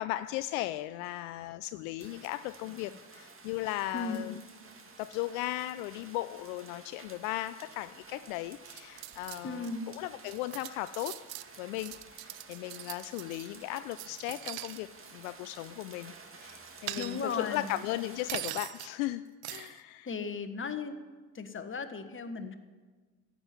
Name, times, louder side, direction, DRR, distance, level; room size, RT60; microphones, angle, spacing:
voice 1, 0.0-4.4 5.0-9.7 10.0-11.3 11.6-20.1, left 16 dB, 65° left, 15 dB, 0.5 m, -37 dB
sound 1, 2.0-18.5, right 4 dB, 30° right, 2.3 m, -52 dB
voice 2, 3.9-4.2 9.4-9.8 17.0-17.7 20.1-20.9 21.3-22.6, left 4 dB, 25° left, 8 dB, 1.4 m, -36 dB
sound 2, 8.6-9.7 10.0-14.8 15.1-15.4 16.5-17.5 18.3-18.9 19.4-19.8, right 16 dB, 55° right, 0.8 m, -42 dB
15.0 x 6.1 x 9.6 m, 1.4 s
hypercardioid pair, 55°, 44 cm